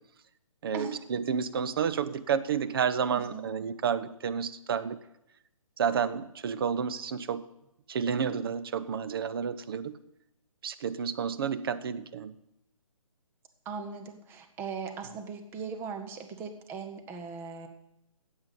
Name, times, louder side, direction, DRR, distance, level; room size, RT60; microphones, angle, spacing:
voice 1, 0.6-5.0 5.8-7.5 7.9-9.9 10.6-12.3, right 7 dB, 40° right, 13 dB, 0.7 m, -30 dB
voice 2, 3.1-3.5 13.6-17.7, right 5 dB, 10° right, 6 dB, 0.8 m, -39 dB
9.6 x 8.0 x 8.2 m, 0.84 s
figure-of-eight pair, 145°, 18 cm